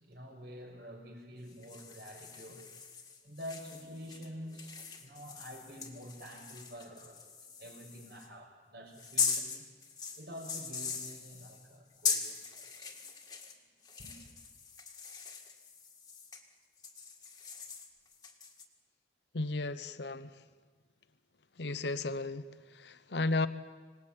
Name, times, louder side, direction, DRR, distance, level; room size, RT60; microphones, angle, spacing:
voice 1, 0.0-2.6 3.2-9.6 10.2-13.1 14.0-14.2, equal, 60° right, 1 dB, 5.8 m, -48 dB
sound 1, 1.5-8.3 8.9-13.6 13.8-16.4 16.8-18.7, left 5 dB, 20° left, 1.9 m, -40 dB
voice 2, 19.3-20.4 21.6-23.5, left 2 dB, 75° left, 13 dB, 0.9 m, -34 dB
26.0 x 19.5 x 8.8 m, 1.4 s
head